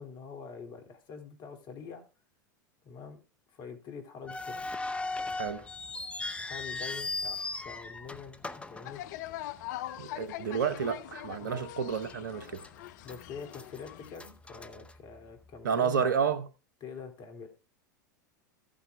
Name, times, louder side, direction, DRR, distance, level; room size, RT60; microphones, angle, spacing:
voice 1, 0.0-2.0 2.8-3.2 3.5-4.7 6.4-9.0 11.4-11.6 13.0-16.3 16.8-17.5, left 5 dB, 45° left, 2.4 m, -45 dB
sound 1, 4.3-9.6 9.9-10.0 10.7-10.9 11.4-11.5 12.1-12.7 13.0-15.5, left 3 dB, 10° left, 0.7 m, -38 dB
sound 2, 8.8-14.2, left 14 dB, 65° left, 0.5 m, -42 dB
voice 2, 10.0-12.6 15.6-16.4, right 6 dB, 80° right, 0.9 m, -30 dB
14.5 x 8.8 x 2.2 m
hypercardioid pair, 90°, 10 cm